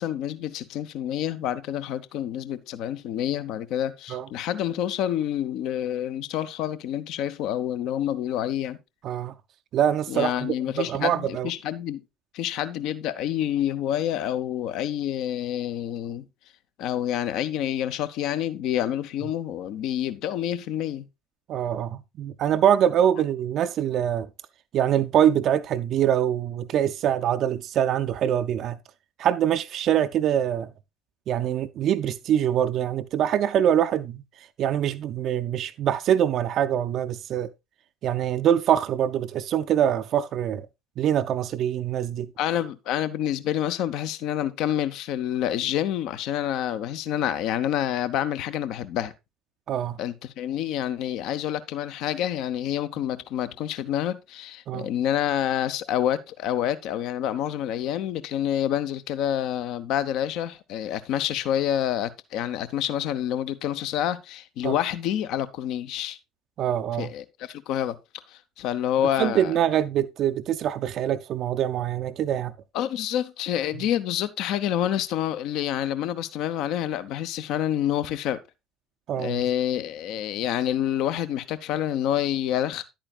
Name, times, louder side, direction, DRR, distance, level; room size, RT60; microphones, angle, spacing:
voice 1, 0.0-8.8 10.1-12.0 12.3-16.3 16.8-21.1 42.4-49.1 50.0-66.2 67.0-68.0 68.3-69.6 72.7-78.4 79.2-82.8, left 11 dB, 60° left, 0.7 m, -28 dB
voice 2, 9.0-9.3 9.7-11.5 21.5-24.3 24.7-28.8 29.2-30.7 31.3-37.5 38.0-40.7 41.0-42.3 49.7-50.0 54.7-54.9 64.6-64.8 66.6-67.1 69.2-72.5 79.1-79.4, right 10 dB, 50° right, 0.4 m, -24 dB
10.5 x 8.7 x 2.4 m
figure-of-eight pair, 60°, 0 cm